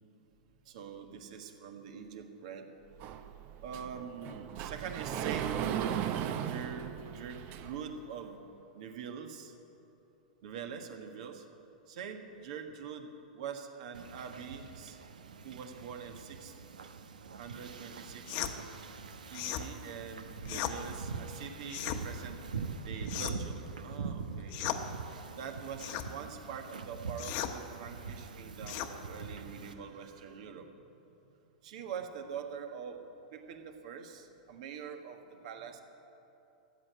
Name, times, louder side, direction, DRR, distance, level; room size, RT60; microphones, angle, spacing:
voice 1, 0.6-2.7 3.6-5.6 6.5-8.4 8.7-9.6 10.4-11.5 11.9-15.0 15.4-16.6 17.4-18.5 19.3-22.4 22.8-24.6 25.4-30.7 31.6-33.1 33.3-35.8, right 7 dB, 60° right, 5 dB, 1.6 m, -44 dB
Sliding door, 3.0-8.0, right 9 dB, 45° right, 0.8 m, -37 dB
Wind / Ocean, 13.9-29.7, right 5 dB, 85° right, 0.9 m, -43 dB
sound 1, 18.3-18.5 19.3-19.7 20.4-20.8 21.7-22.0 23.1-23.5 24.5-24.8 25.8-26.1 27.2-27.5 28.7-28.9, left 11 dB, 50° left, 1.1 m, -36 dB
14.0 x 8.4 x 9.5 m, 2.9 s
hypercardioid pair, 110°, 4 cm